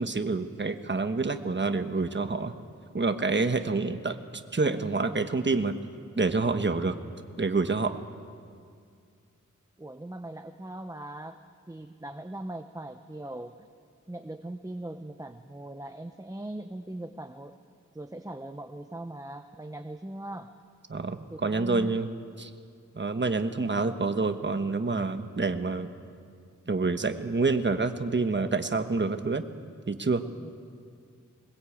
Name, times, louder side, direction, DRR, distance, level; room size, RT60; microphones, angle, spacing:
voice 1, 0.0-2.5 2.9-4.2 4.5-5.8 6.2-6.9 7.4-8.0 20.9-22.1 22.4-22.5 22.9-25.9 26.7-29.4 29.9-30.2, right 3 dB, 35° right, 8 dB, 1.2 m, -27 dB
voice 2, 9.8-11.4 11.7-13.7 14.1-17.5 17.9-20.5 21.3-22.0 30.4-30.5, right 1 dB, 10° right, 7 dB, 0.8 m, -40 dB
21.0 x 21.0 x 8.6 m, 2.2 s
wide cardioid pair, 95°, 31 cm